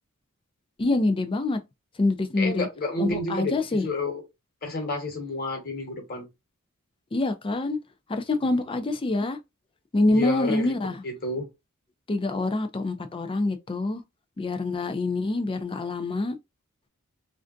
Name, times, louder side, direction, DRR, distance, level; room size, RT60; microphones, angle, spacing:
voice 1, 0.8-1.6 2.0-2.7 3.0-3.9 7.1-7.8 8.1-9.4 9.9-11.0 12.1-14.0 14.4-16.4, left 2 dB, 25° left, 0.4 m, -25 dB
voice 2, 2.4-4.2 4.6-6.2 10.1-10.7 11.0-11.4, left 2 dB, 45° left, 1.2 m, -30 dB
3.3 x 2.5 x 2.5 m
head